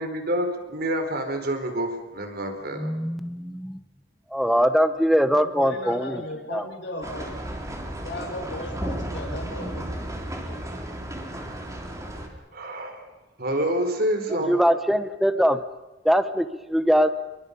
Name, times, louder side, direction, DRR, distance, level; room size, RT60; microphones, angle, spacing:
voice 1, 0.0-2.9 12.5-13.1 13.4-14.6, right 1 dB, 55° right, 5 dB, 4.4 m, -27 dB
voice 2, 2.8-3.8 4.3-6.2 6.5-6.7 14.3-15.7 16.0-17.1, equal, ahead, 11 dB, 1.0 m, -22 dB
voice 3, 5.3-7.4 8.0-10.2 10.5-10.7, left 1 dB, 70° left, 1 dB, 5.1 m, -36 dB
sound 1, 7.0-12.3, right 1 dB, 15° right, 3.4 m, -34 dB
28.5 x 23.5 x 5.4 m, 1.1 s
head